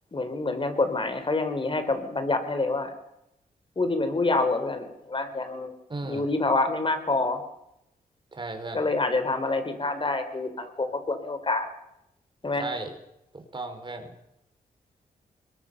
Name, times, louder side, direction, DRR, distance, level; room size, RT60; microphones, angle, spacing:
voice 1, 0.1-2.9 3.8-5.7 6.0-7.4 8.7-11.7 12.4-12.6, left 3 dB, 35° left, 9 dB, 4.2 m, -27 dB
voice 2, 5.9-6.3 8.3-8.9 12.5-13.0 13.3-14.1, right 2 dB, 35° right, 6 dB, 4.9 m, -35 dB
22.0 x 20.5 x 7.0 m, 0.84 s
cardioid pair, 70°, 15 cm